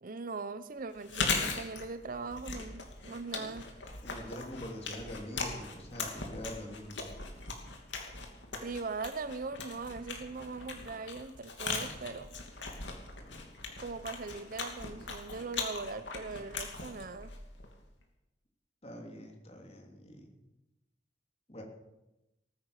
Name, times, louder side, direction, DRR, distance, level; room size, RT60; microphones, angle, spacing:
voice 1, 0.0-3.7 8.6-12.3 13.8-17.4, right 4 dB, 45° right, 0.6 m, -40 dB
Chewing mastication, 0.9-17.8, left 4 dB, 75° left, 2.7 m, -39 dB
voice 2, 4.0-7.1 13.2-13.5 18.8-20.3 21.5-21.6, equal, 35° left, 3.1 m, -45 dB
19.5 x 9.7 x 6.5 m
head